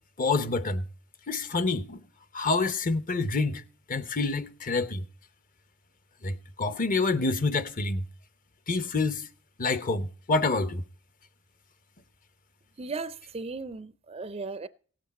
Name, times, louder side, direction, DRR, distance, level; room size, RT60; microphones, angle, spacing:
voice 1, 0.2-0.8 1.3-2.0 2.3-3.6 3.9-5.0 6.2-8.0 8.7-9.3 9.6-10.8, left 3 dB, 35° left, 0.7 m, -27 dB
voice 2, 12.8-14.7, right 3 dB, 25° right, 0.4 m, -36 dB
17.0 x 7.8 x 4.1 m
head